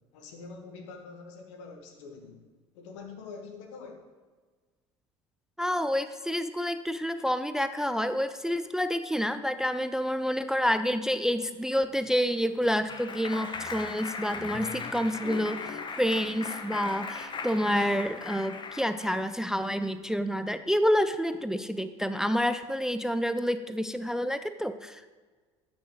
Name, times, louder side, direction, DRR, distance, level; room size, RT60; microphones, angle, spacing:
voice 1, 0.1-2.4 2.7-4.1, left 4 dB, 75° left, 3 dB, 1.4 m, -45 dB
voice 2, 5.6-25.1, equal, 5° right, 11 dB, 0.4 m, -28 dB
Clapping, 12.0-19.3, left 4 dB, 30° left, 1.0 m, -38 dB
12.5 x 6.2 x 3.1 m, 1.4 s
hypercardioid pair, 65°, 15 cm